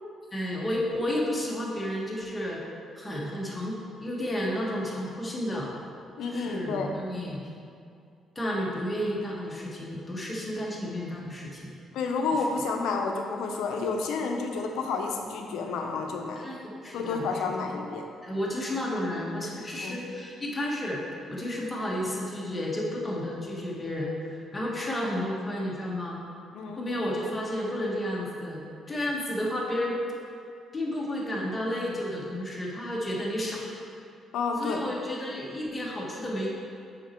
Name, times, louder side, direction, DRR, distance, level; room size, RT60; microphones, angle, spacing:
voice 1, 0.3-2.6 3.0-5.7 6.2-7.5 8.3-11.7 16.4-16.5 16.8-17.3 18.2-21.0 21.3-26.2 26.8-28.6 28.9-30.0 30.7-33.7 34.6-36.5, left 1 dB, 20° left, -4 dB, 1.4 m, -32 dB
voice 2, 6.2-6.9 11.9-16.4 16.9-18.1 19.8-20.0 26.5-26.9 34.3-34.8, left 4 dB, 85° left, 3 dB, 0.7 m, -30 dB
5.9 x 5.2 x 4.5 m, 2.4 s
cardioid pair, 100°, 0 cm